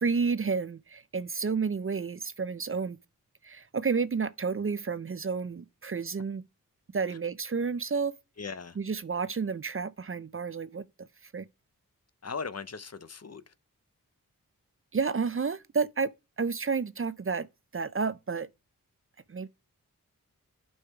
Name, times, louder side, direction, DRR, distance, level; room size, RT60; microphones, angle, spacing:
voice 1, 0.0-3.0 3.4-6.4 6.9-8.2 8.8-10.8 11.2-11.5 14.9-17.5 17.7-18.5 19.3-19.5, right 5 dB, 40° right, 0.5 m, -31 dB
voice 2, 8.4-8.8 12.2-13.5, left 5 dB, 45° left, 0.7 m, -39 dB
8.4 x 5.6 x 4.6 m
wide cardioid pair, 65°, 35 cm